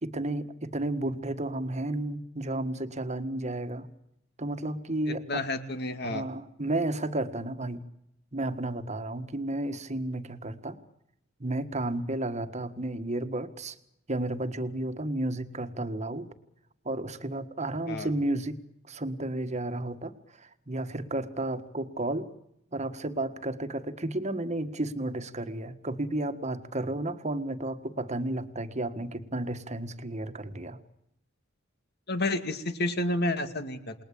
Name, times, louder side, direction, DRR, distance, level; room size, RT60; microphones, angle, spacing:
voice 1, 0.0-3.9 4.4-5.4 6.0-7.8 8.3-10.8 11.4-13.7 14.1-16.3 16.8-18.6 18.9-22.3 22.7-30.8, right 1 dB, 35° right, 10 dB, 1.7 m, -32 dB
voice 2, 5.1-6.2 17.9-18.1 32.1-33.9, left 2 dB, 55° left, 9 dB, 2.3 m, -30 dB
28.5 x 20.5 x 8.6 m, 0.79 s
head